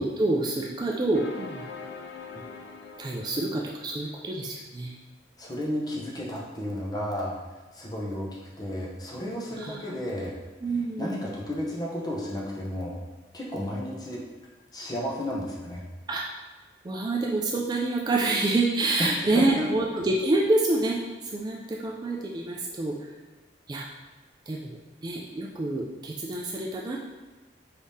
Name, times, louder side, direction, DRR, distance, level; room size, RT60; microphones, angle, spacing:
voice 1, 0.0-1.6 3.0-4.9 9.6-9.9 10.6-11.2 16.1-16.2 16.8-23.1 23.7-23.9 24.5-24.8 25.0-27.0, right 2 dB, 25° right, -2 dB, 0.3 m, -27 dB
sound 1, 1.1-4.1, left 4 dB, 65° left, 0.4 m, -43 dB
voice 2, 5.4-7.3 7.7-8.3 8.6-10.3 11.0-13.0 13.3-14.2 14.7-15.8 19.3-19.7, equal, 20° left, -3 dB, 0.7 m, -32 dB
4.8 x 3.5 x 2.7 m, 1.2 s
head